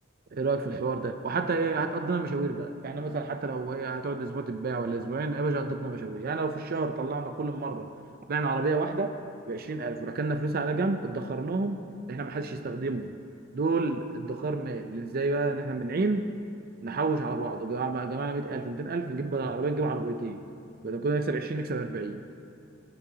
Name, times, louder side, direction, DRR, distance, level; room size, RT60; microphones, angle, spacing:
voice 1, 0.3-7.9 8.3-9.1 9.5-11.8 12.1-13.1 13.5-16.3 16.8-20.4 20.8-22.2, right 3 dB, 50° right, 7 dB, 0.5 m, -30 dB
18.0 x 8.7 x 2.8 m, 2.4 s
head